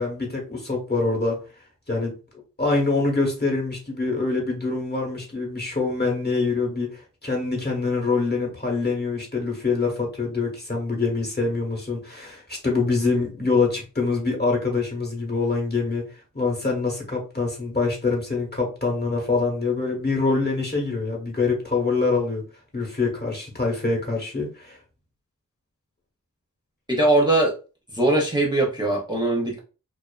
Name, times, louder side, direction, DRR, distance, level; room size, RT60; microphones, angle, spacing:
voice 1, 0.0-1.4 1.9-2.1 2.6-16.1 16.3-22.4 22.7-24.8, left 3 dB, 30° left, -1 dB, 1.0 m, -25 dB
voice 2, 26.9-27.5 27.9-29.6, right 2 dB, 15° right, -3 dB, 0.7 m, -21 dB
2.4 x 2.4 x 2.3 m, 0.33 s
wide cardioid pair, 55°, 33 cm